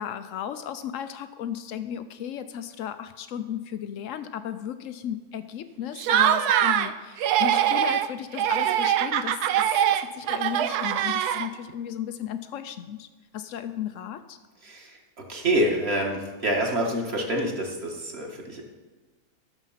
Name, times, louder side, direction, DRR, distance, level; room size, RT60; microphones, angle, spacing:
voice 1, 0.0-9.7 10.0-13.1 13.3-14.4, left 9 dB, 85° left, 11 dB, 0.7 m, -35 dB
Laughter, 6.0-6.9 7.2-8.1 8.4-11.7, right 10 dB, 70° right, 1.0 m, -23 dB
voice 2, 14.6-15.0 15.3-18.6, right 1 dB, 35° right, 0 dB, 1.9 m, -27 dB
14.0 x 7.2 x 5.7 m, 1.2 s
omnidirectional pair, 2.0 m